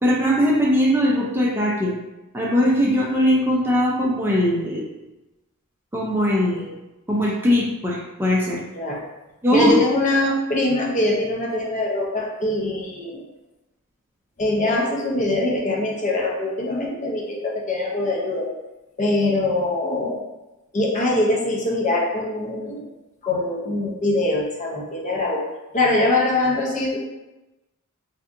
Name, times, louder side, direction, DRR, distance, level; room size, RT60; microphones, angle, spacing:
voice 1, 0.0-1.9 2.3-4.8 5.9-6.7 7.1-8.6 9.4-9.8, equal, 10° right, -4 dB, 0.4 m, -20 dB
voice 2, 9.5-13.2 14.4-18.5 19.0-20.3 20.7-22.9 23.2-25.5 25.7-27.0, left 2 dB, 35° left, -2 dB, 0.6 m, -23 dB
3.4 x 2.7 x 2.5 m, 1.0 s
head